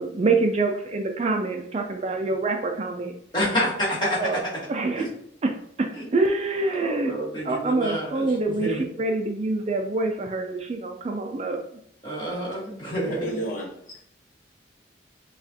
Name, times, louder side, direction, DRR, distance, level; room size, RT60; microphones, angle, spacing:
voice 1, 0.0-3.2 4.2-4.4 4.7-5.1 5.4-5.5 5.8-7.1 7.4-11.6, right 3 dB, 35° right, 3 dB, 0.3 m, -26 dB
voice 2, 3.3-4.5 5.0-5.1 6.0-6.1 6.7-8.3 8.6-8.8 12.0-13.2, equal, 25° left, -6 dB, 1.5 m, -28 dB
voice 3, 13.0-14.0, right 1 dB, 40° left, -4 dB, 1.3 m, -32 dB
7.0 x 2.4 x 2.8 m, 0.67 s
head